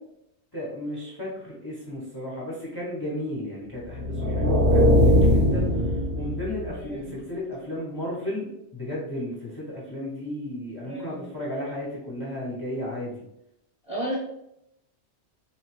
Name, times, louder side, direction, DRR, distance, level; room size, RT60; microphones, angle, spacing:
voice 1, 0.5-13.3, left 1 dB, 25° left, -6 dB, 0.6 m, -34 dB
sound 1, 3.9-6.8, left 1 dB, 30° right, 0.4 m, -20 dB
voice 2, 10.8-11.3 13.8-14.1, right 1 dB, 5° right, -4 dB, 0.7 m, -33 dB
3.0 x 2.2 x 3.0 m, 0.79 s
omnidirectional pair, 1.2 m